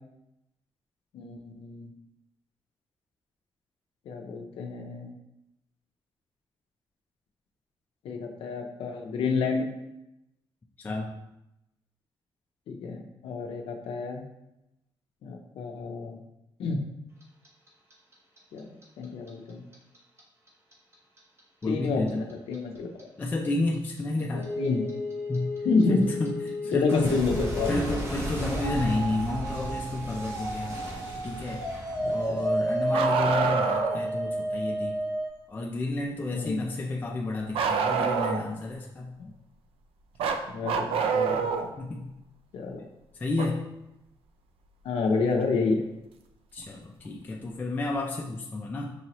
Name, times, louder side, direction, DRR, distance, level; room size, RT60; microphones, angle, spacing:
voice 1, 1.1-1.9 4.1-5.1 8.0-9.7 12.7-14.2 15.2-16.2 16.6-16.8 18.5-19.6 21.7-23.1 24.6-24.9 25.6-26.0 26.7-27.8 32.0-32.4 36.3-36.6 39.2-39.3 40.5-41.6 42.5-42.9 44.8-45.8, left 4 dB, 90° left, 2 dB, 0.5 m, -29 dB
voice 2, 10.8-11.1 21.6-22.3 23.2-24.5 25.3-25.5 25.9-26.3 26.6-27.2 27.7-30.8 31.2-31.6 32.1-35.0 35.5-39.1 41.8-42.1 43.1-43.7 46.5-48.9, left 2 dB, 20° left, -1 dB, 0.3 m, -31 dB
Clock, 17.2-20.2 20.5-23.5 23.7-32.6, equal, 30° right, 0.8 m, -36 dB
sound 1, 24.3-35.3, equal, 60° right, 1.5 m, -32 dB
Bark, 32.9-34.0 37.5-38.6 40.2-41.7 43.4-43.5 45.4-45.5 46.6-46.7, right 6 dB, 85° right, 0.4 m, -26 dB
5.4 x 2.9 x 2.9 m, 0.90 s
wide cardioid pair, 165°, 9 cm